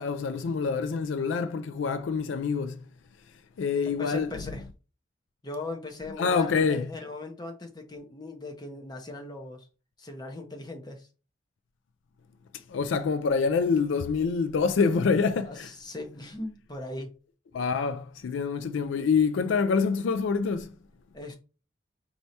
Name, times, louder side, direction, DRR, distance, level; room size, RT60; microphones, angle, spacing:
voice 1, 0.0-2.8 3.6-4.3 6.2-6.9 12.7-15.7 17.5-20.7, left 5 dB, 80° left, 0.4 m, -26 dB
voice 2, 3.9-4.6 5.4-9.7 10.0-11.1 15.5-17.1 21.1-21.3, left 2 dB, 20° left, 0.9 m, -39 dB
4.4 x 2.8 x 3.2 m
head